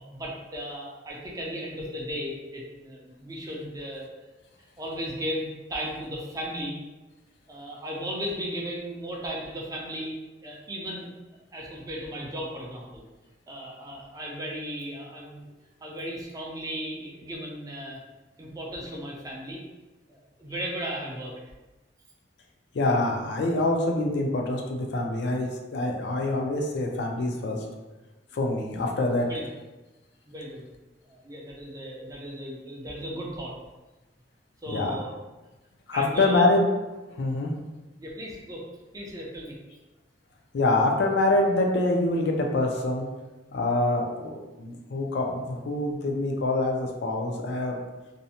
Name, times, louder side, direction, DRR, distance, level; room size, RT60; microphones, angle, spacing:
voice 1, 0.0-4.1 4.8-6.8 7.5-10.1 10.4-11.1 11.5-13.0 13.5-15.4 15.8-18.0 18.4-19.6 20.1-21.3 29.3-29.4 30.3-30.7 31.1-33.5 34.6-35.1 35.9-36.4 38.0-38.6 38.9-39.6, equal, 20° right, -3 dB, 0.4 m, -36 dB
voice 2, 22.7-27.7 28.3-29.3 34.7-35.0 35.9-36.7 37.2-37.5 40.5-43.1 43.5-47.8, left 2 dB, 65° left, 1 dB, 0.4 m, -25 dB
2.5 x 2.0 x 2.7 m, 1.1 s
head